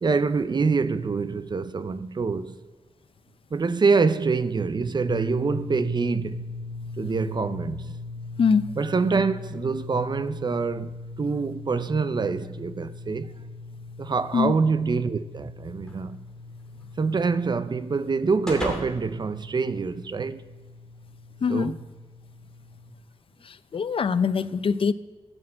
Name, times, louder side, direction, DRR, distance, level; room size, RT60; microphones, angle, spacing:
voice 1, 0.0-2.6 3.5-6.5 7.0-8.0 8.8-13.3 14.0-16.2 17.0-20.4 21.5-21.8, right 4 dB, 40° right, 0.5 m, -25 dB
sound 1, 5.1-22.9, left 3 dB, 40° left, 1.3 m, -40 dB
sound 2, 15.9-20.3, left 1 dB, 5° left, 2.5 m, -39 dB
voice 2, 21.4-21.7 23.4-24.9, left 6 dB, 55° left, 0.5 m, -23 dB
14.0 x 6.2 x 7.6 m
wide cardioid pair, 105°, 11 cm